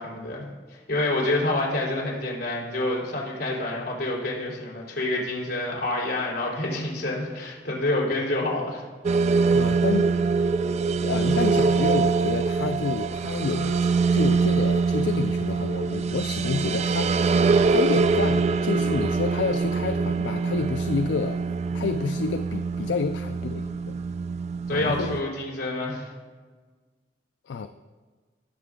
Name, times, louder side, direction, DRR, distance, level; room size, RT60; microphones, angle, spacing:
voice 1, 0.0-8.8 24.7-26.1, left 2 dB, 65° left, -3 dB, 3.4 m, -28 dB
sound 1, 9.0-25.2, right 4 dB, 40° right, 0.4 m, -24 dB
voice 2, 9.5-10.1 11.0-17.3 17.7-21.4 21.7-24.0 24.7-25.1 27.5-27.7, left 5 dB, 80° left, 9 dB, 0.4 m, -29 dB
18.5 x 6.7 x 3.7 m, 1.4 s
head